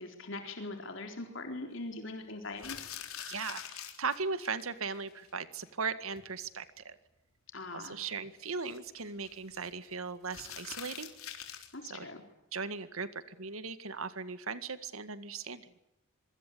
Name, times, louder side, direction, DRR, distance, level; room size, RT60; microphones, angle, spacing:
voice 1, 0.0-2.8 7.5-8.0 11.7-12.2, left 2 dB, 60° left, 4 dB, 4.0 m, -41 dB
sound 1, 2.5-4.6 4.9-5.0 5.3-5.4 5.7-5.8 6.2-6.5 8.5-9.7 10.3-11.7, left 9 dB, 90° left, 4.2 m, -45 dB
voice 2, 3.3-7.0 7.7-11.1 11.8-12.1 12.5-15.7, right 4 dB, 85° right, 12 dB, 1.9 m, -38 dB
25.5 x 24.0 x 8.7 m, 0.89 s
head